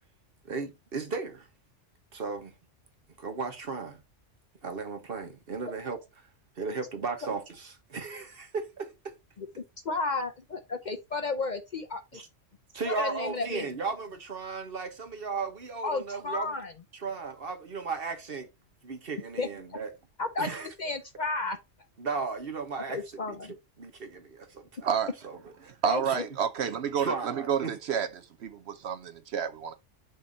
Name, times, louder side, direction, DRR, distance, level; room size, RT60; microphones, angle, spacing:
voice 1, 0.4-1.5 2.1-2.5 3.2-4.0 4.6-6.3 6.6-9.1 12.1-12.3 12.7-16.5 16.9-18.5 18.8-19.9 20.4-20.7 22.0-23.4 23.8-25.0 25.2-25.7 26.0-26.2 27.0-27.8, right 4 dB, 50° right, 1.4 m, -35 dB
voice 2, 9.8-12.2 12.9-13.7 15.8-16.7 19.4-19.5 20.2-20.5 20.8-21.6 22.9-23.5 25.8-26.2, left 3 dB, 50° left, 0.7 m, -32 dB
voice 3, 25.8-29.7, right 8 dB, 65° right, 0.8 m, -30 dB
6.5 x 2.9 x 5.2 m
omnidirectional pair, 1.2 m